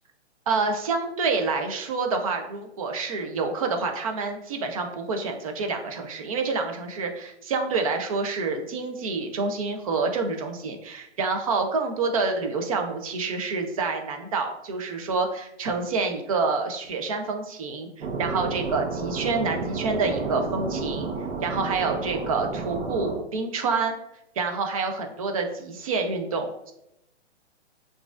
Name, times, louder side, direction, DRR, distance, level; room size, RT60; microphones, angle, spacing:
voice 1, 0.5-21.1 21.4-23.9 24.4-26.7, right 4 dB, 30° right, 4 dB, 0.5 m, -27 dB
sound 1, 18.0-23.2, right 4 dB, 65° right, 0.8 m, -31 dB
5.8 x 2.5 x 2.4 m, 0.81 s
hypercardioid pair, 140°, 35 cm